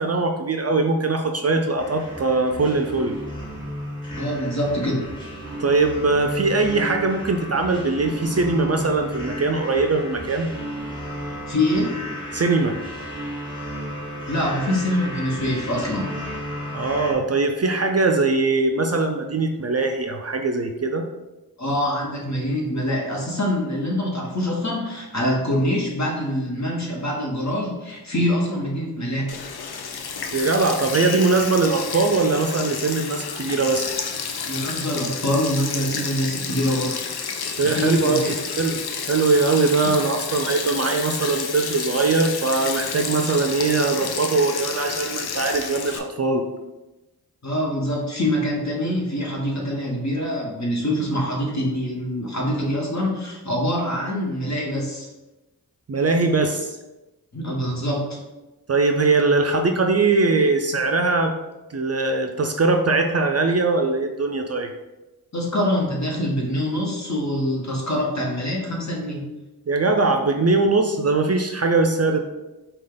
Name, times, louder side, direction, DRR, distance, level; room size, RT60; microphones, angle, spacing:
voice 1, 0.0-3.1 5.6-10.5 12.3-12.7 16.7-21.1 30.3-33.9 37.6-46.4 55.9-56.8 58.7-61.3 61.7-64.7 69.7-72.2, right 3 dB, 40° right, 5 dB, 0.5 m, -21 dB
sound 1, 1.8-17.1, equal, 10° left, 1.5 m, -33 dB
voice 2, 4.1-5.0 11.5-11.9 14.3-16.0 21.6-29.3 34.5-37.0 37.6-38.3 39.8-39.9 47.4-55.1 57.3-58.2 65.3-69.2, equal, 45° left, -2 dB, 1.3 m, -25 dB
Sink (filling or washing), 29.3-46.0, left 6 dB, 75° left, 0.6 m, -30 dB
4.9 x 2.4 x 3.8 m, 1.0 s
cardioid pair, 45°, 39 cm